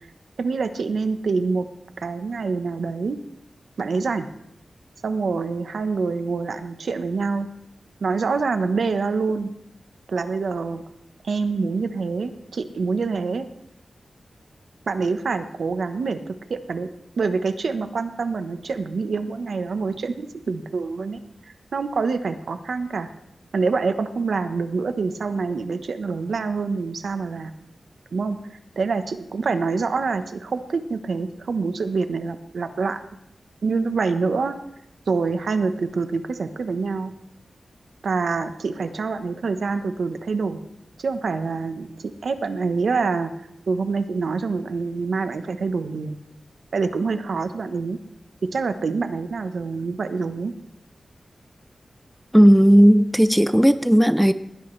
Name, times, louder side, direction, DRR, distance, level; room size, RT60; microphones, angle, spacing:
voice 1, 0.4-1.6 2.0-3.2 3.8-4.3 5.0-7.5 8.0-9.5 10.1-10.8 11.3-13.4 14.9-16.9 17.2-21.2 21.7-23.1 23.5-27.5 28.1-28.4 28.8-33.0 33.6-34.6 35.1-37.1 38.0-40.6 41.0-41.9 42.2-43.3 43.7-46.2 46.7-48.0 48.5-50.5, right 4 dB, 75° right, 9 dB, 1.1 m, -26 dB
voice 2, 52.3-54.3, equal, 5° right, 12 dB, 0.5 m, -14 dB
20.5 x 16.5 x 3.3 m, 0.79 s
wide cardioid pair, 140°, 0 cm